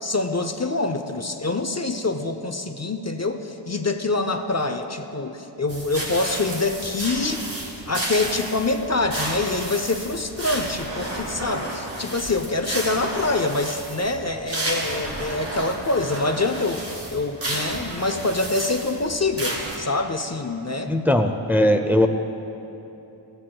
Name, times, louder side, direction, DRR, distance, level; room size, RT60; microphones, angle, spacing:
voice 1, 0.0-7.4 7.9-20.9, left 3 dB, 35° left, 7 dB, 0.6 m, -25 dB
sound 1, 5.7-19.8, right 1 dB, 80° right, 2.2 m, -32 dB
voice 2, 20.9-22.1, left 1 dB, 5° right, 5 dB, 0.5 m, -19 dB
18.5 x 15.0 x 2.3 m, 3.0 s
wide cardioid pair, 50°, 45 cm